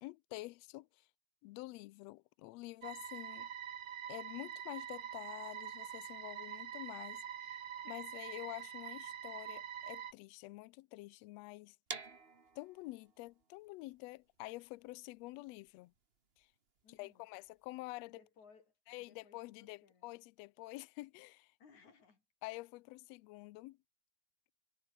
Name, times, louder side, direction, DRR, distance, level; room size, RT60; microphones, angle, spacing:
voice 1, 0.0-1.1 1.4-3.5 4.1-7.6 7.8-11.8 12.5-15.9 16.4-16.5 16.9-18.2 18.9-21.5 22.4-23.8, left 21 dB, 85° left, 1.5 m, -48 dB
sound 1, 2.8-10.1, right 9 dB, 60° right, 1.2 m, -45 dB
sound 2, 11.9-17.7, right 4 dB, 30° right, 1.2 m, -51 dB
voice 2, 16.8-17.3 18.1-20.1 21.6-22.2, left 5 dB, 65° left, 5.7 m, -64 dB
omnidirectional pair, 3.6 m